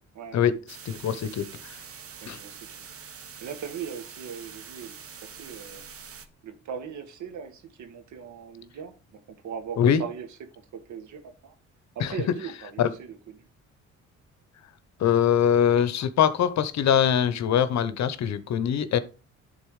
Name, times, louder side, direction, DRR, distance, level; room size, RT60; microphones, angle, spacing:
voice 1, 0.2-0.5 2.2-2.8 3.4-5.0 5.2-5.8 6.4-10.3 10.7-11.5 12.0-13.5, right 7 dB, 70° right, 1.7 m, -39 dB
sound 1, 0.7-6.3, right 7 dB, 50° right, 1.1 m, -44 dB
voice 2, 0.8-1.8 2.3-2.4 9.8-10.0 12.0-12.1 12.8-12.9 15.0-19.0, left 8 dB, 65° left, 0.9 m, -23 dB
10.5 x 4.0 x 4.8 m
cardioid pair, 90°, 30 cm